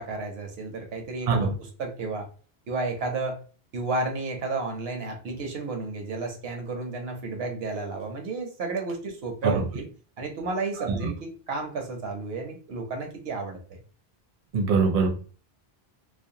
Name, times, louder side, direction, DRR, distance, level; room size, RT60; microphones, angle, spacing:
voice 1, 0.0-2.3 2.7-3.4 3.7-9.8 10.2-13.8, right 3 dB, 75° right, 3 dB, 0.9 m, -32 dB
voice 2, 14.5-15.1, right 4 dB, 45° right, 2 dB, 0.6 m, -22 dB
2.4 x 2.0 x 2.6 m, 0.39 s
omnidirectional pair, 1.1 m